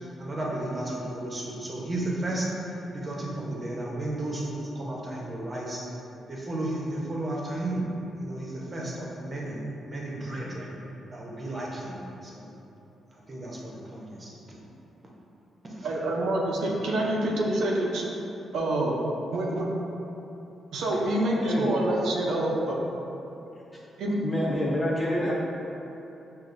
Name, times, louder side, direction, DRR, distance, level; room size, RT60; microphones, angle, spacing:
voice 1, 0.2-5.8 6.3-7.9 8.2-10.8 11.1-12.5 13.1-14.3 15.7-15.9, right 1 dB, 30° right, -4 dB, 0.8 m, -33 dB
voice 2, 15.8-18.0 18.5-18.9 19.3-19.6 20.7-22.8 24.0-24.1, right 1 dB, 85° right, -2 dB, 0.5 m, -26 dB
voice 3, 21.4-21.7 24.2-25.3, equal, 15° left, -6 dB, 0.8 m, -27 dB
6.4 x 2.5 x 2.5 m, 3.0 s
cardioid pair, 115°, 0 cm